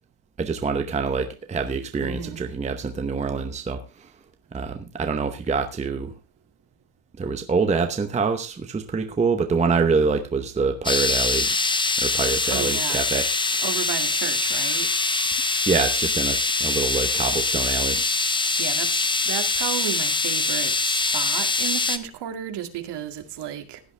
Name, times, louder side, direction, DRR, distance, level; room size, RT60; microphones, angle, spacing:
voice 1, 0.4-4.1 4.5-6.1 7.2-11.5 12.0-13.3 15.7-18.0, right 5 dB, 15° right, 0.8 m, -25 dB
voice 2, 2.0-2.4 12.5-13.1 13.6-14.9 18.6-23.8, right 10 dB, 55° right, 2.3 m, -33 dB
sound 1, 10.8-22.0, left 3 dB, 10° left, 0.5 m, -23 dB
16.5 x 11.0 x 3.3 m
cardioid pair, 180°, 49 cm